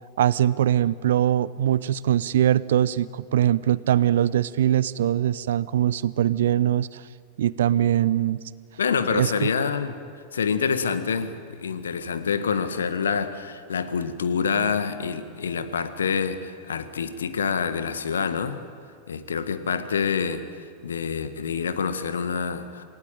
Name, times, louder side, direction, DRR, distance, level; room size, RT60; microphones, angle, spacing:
voice 1, 0.2-7.0 7.4-8.4 9.1-9.5, right 11 dB, 60° right, 19 dB, 0.7 m, -22 dB
voice 2, 8.8-9.9 10.3-18.6 19.1-22.8, left 6 dB, 70° left, 11 dB, 1.7 m, -27 dB
28.0 x 19.0 x 9.1 m, 2.1 s
figure-of-eight pair, 90°, 0 cm